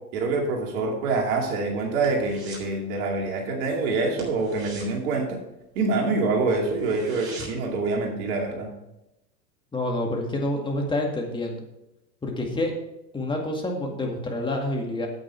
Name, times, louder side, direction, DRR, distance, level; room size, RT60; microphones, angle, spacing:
voice 1, 0.1-5.4 5.8-8.7, right 3 dB, 55° right, 1 dB, 2.5 m, -26 dB
sound 1, 1.3-2.8 3.0-3.3 3.6-3.7 4.1-6.0 6.3-6.4 6.7-7.8 8.1-8.2, right 3 dB, 25° right, 3.6 m, -43 dB
voice 2, 9.7-11.6 12.2-12.7 13.1-15.1, left 1 dB, 10° left, 1 dB, 1.9 m, -28 dB
9.1 x 8.6 x 4.4 m, 0.91 s
hypercardioid pair, 120°, 50 cm